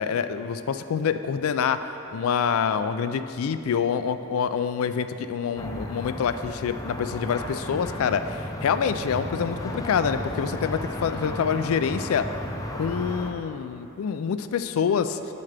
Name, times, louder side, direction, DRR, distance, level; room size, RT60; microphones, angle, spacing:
voice 1, 0.0-1.8 2.1-12.3 12.8-15.2, left 7 dB, 80° left, 11 dB, 0.4 m, -26 dB
sound 1, 5.6-13.3, left 1 dB, 15° left, 0.5 m, -34 dB
9.5 x 7.5 x 3.4 m, 2.9 s
head